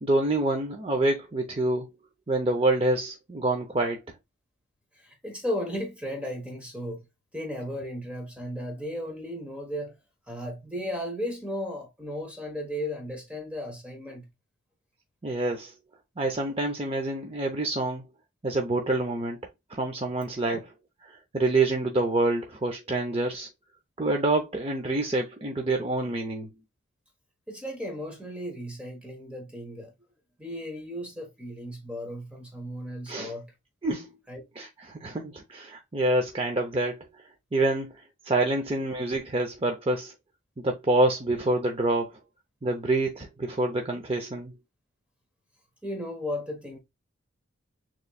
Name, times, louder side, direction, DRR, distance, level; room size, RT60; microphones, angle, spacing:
voice 1, 0.0-1.9 2.3-4.0 15.2-15.7 16.2-18.0 18.4-19.4 19.7-20.6 21.1-23.5 24.0-26.5 33.1-33.3 33.8-34.1 34.6-37.1 37.5-37.9 38.2-40.1 40.6-42.2 42.6-44.5, right 2 dB, 25° right, 0.6 m, -27 dB
voice 2, 5.0-7.0 7.3-10.0 10.3-14.3 20.5-20.6 27.5-29.9 30.4-33.5 34.3-34.4 45.8-46.8, equal, 5° right, 1.0 m, -35 dB
6.7 x 3.0 x 2.3 m
head